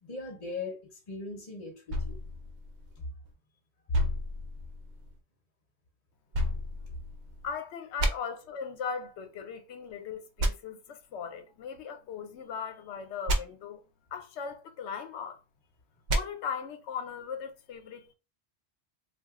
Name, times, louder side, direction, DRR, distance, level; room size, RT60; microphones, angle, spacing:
voice 1, 0.0-2.2 3.9-4.0 6.9-7.0, left 1 dB, 40° left, 0.8 m, -37 dB
sound 1, 1.9-3.3 3.9-5.2 6.3-7.5 8.0-8.1 10.4-10.5 13.3-13.4 16.1-16.2, equal, 80° right, 0.9 m, -31 dB
voice 2, 7.4-13.8 14.1-15.4 16.1-18.1, left 6 dB, 85° left, 0.9 m, -38 dB
2.5 x 2.3 x 3.6 m
omnidirectional pair, 1.1 m